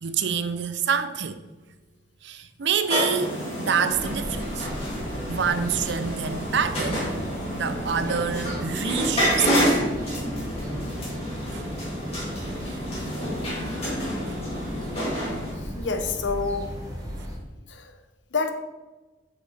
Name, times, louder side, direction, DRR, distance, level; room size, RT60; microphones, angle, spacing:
voice 1, 0.0-1.4 2.2-4.7 5.3-7.1 7.5-9.6 11.1-11.2 11.5-11.7 12.2-12.3 12.7-12.8 13.2-13.3 13.7-13.8 14.3-14.4 17.1-17.3, right 7 dB, 60° right, 0.5 m, -27 dB
sound 1, 2.9-15.5, equal, 30° left, 2.2 m, -28 dB
sound 2, 3.9-17.4, equal, 20° right, 1.3 m, -37 dB
voice 2, 15.6-16.7 17.7-17.9 18.3-18.5, left 4 dB, 65° left, 0.8 m, -28 dB
5.9 x 5.9 x 4.2 m
head